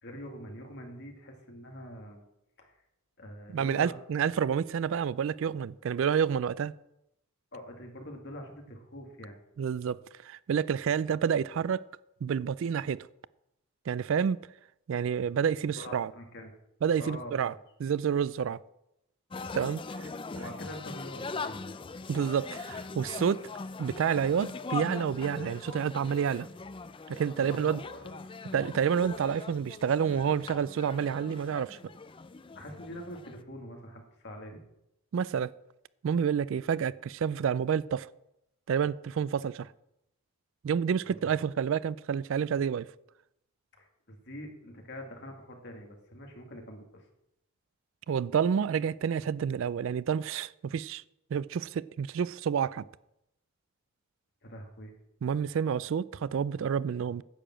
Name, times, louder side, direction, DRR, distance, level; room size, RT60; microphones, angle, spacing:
voice 1, 0.0-2.2 2.6-2.7 3.2-4.0 7.5-9.4 15.8-16.5 17.0-17.6 20.1-21.8 27.4-28.1 32.5-34.6 41.0-41.3 43.8-47.0 54.4-54.9, left 1 dB, 50° left, 2.1 m, -44 dB
voice 2, 3.5-6.7 9.6-11.8 12.2-13.1 13.9-14.4 14.9-16.1 16.8-17.5 17.8-18.6 19.5-20.1 22.1-23.4 23.8-26.5 27.1-27.8 28.5-31.8 35.1-35.5 36.0-38.1 38.7-39.7 40.6-42.9 48.1-51.0 51.3-52.8 55.2-57.2, right 7 dB, 60° right, 0.3 m, -29 dB
sound 1, 19.3-33.4, left 4 dB, 25° left, 0.4 m, -41 dB
10.0 x 6.8 x 7.5 m
head